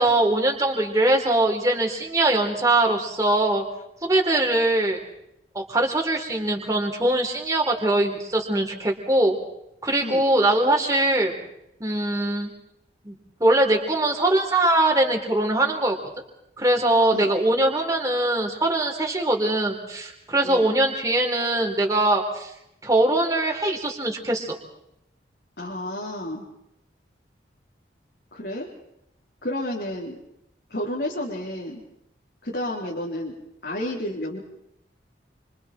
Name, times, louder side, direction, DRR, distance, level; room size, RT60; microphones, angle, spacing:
voice 1, 0.0-3.6 4.0-5.0 5.5-9.4 9.8-11.3 11.8-12.5 13.0-16.0 16.6-22.5 22.8-24.6, right 1 dB, 20° right, 2 dB, 4.2 m, -22 dB
voice 2, 25.6-26.5 28.3-28.7 29.4-30.2 30.7-31.8 32.4-33.3 33.6-34.4, left 1 dB, 65° left, -4 dB, 4.4 m, -31 dB
29.5 x 26.5 x 4.5 m, 0.80 s
head